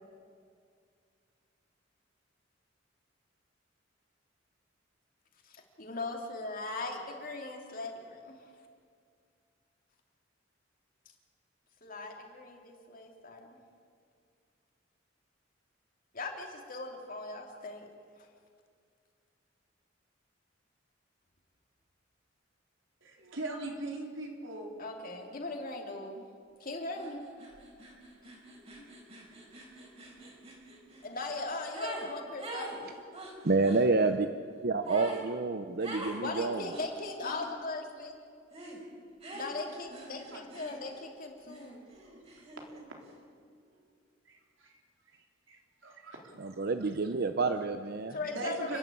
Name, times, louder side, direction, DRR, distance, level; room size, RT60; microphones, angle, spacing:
voice 1, 5.4-8.4 11.8-13.6 16.1-17.9 24.8-26.2 26.6-27.2 28.8-28.9 31.0-32.8 36.2-38.2 39.3-41.9 48.1-48.8, left 2 dB, 50° left, 2 dB, 3.0 m, -39 dB
voice 2, 23.0-24.8 40.3-40.8 44.3-44.7 45.5-45.6 45.8-46.5 48.2-48.8, right 2 dB, 85° right, 1 dB, 3.8 m, -40 dB
sound 1, 27.0-27.1 27.4-32.1 32.4-33.9 34.9-35.3 35.8-36.2 36.7-37.4 38.5-38.8 39.2-41.1 41.5-42.8, right 1 dB, 35° right, 4.1 m, -45 dB
voice 3, 33.4-34.3 34.6-36.7 46.4-48.1, right 3 dB, 55° right, 8 dB, 0.7 m, -28 dB
29.5 x 11.0 x 8.6 m, 2.2 s
head